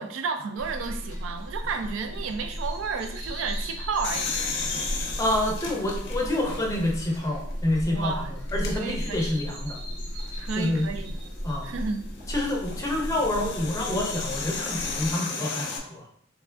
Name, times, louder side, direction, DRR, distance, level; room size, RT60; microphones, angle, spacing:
voice 1, 0.0-4.5 7.9-8.3 8.7-9.2 10.4-11.1 11.6-12.1, right 5 dB, 85° right, 8 dB, 0.4 m, -32 dB
sound 1, 0.6-15.1, equal, 45° right, 1.3 m, -35 dB
sound 2, 4.0-7.0 7.5-7.6 8.5-8.8 10.9-15.8, left 5 dB, 60° left, 0.5 m, -34 dB
voice 2, 5.2-9.8 10.6-10.9 11.4-11.7 12.3-16.0, left 1 dB, 15° left, -2 dB, 0.7 m, -28 dB
3.3 x 3.1 x 2.4 m, 0.65 s
head